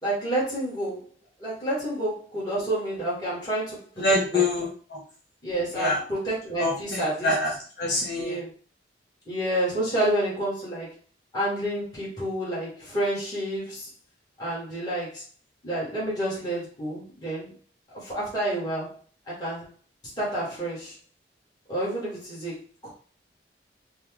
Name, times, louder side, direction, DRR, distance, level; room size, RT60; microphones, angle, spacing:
voice 1, 0.0-1.1 1.4-4.4 5.4-7.3 8.2-8.5 9.3-10.9 11.3-13.9 14.4-15.2 15.6-17.5 17.9-19.0 19.3-19.7 20.2-21.0 21.7-22.9, right 1 dB, 20° left, -8 dB, 1.9 m, -29 dB
voice 2, 4.0-5.0 5.7-6.0 6.6-8.4, left 2 dB, 65° left, -4 dB, 1.5 m, -26 dB
4.2 x 2.3 x 3.6 m, 0.41 s
head